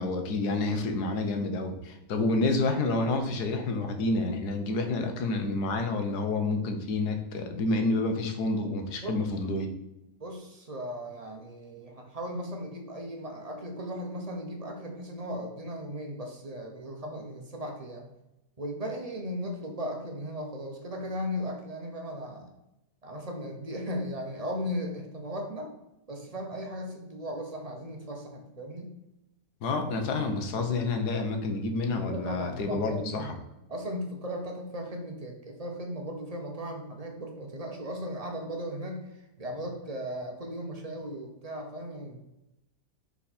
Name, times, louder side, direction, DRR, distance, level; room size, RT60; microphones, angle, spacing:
voice 1, 0.0-9.7 29.6-33.3, left 2 dB, 65° left, 5 dB, 1.4 m, -29 dB
voice 2, 10.2-18.0 18.6-22.5 23.0-25.7 26.1-28.9 32.1-33.3 33.7-42.2, equal, 30° right, 2 dB, 0.7 m, -37 dB
5.6 x 4.8 x 4.3 m, 0.94 s
omnidirectional pair, 1.9 m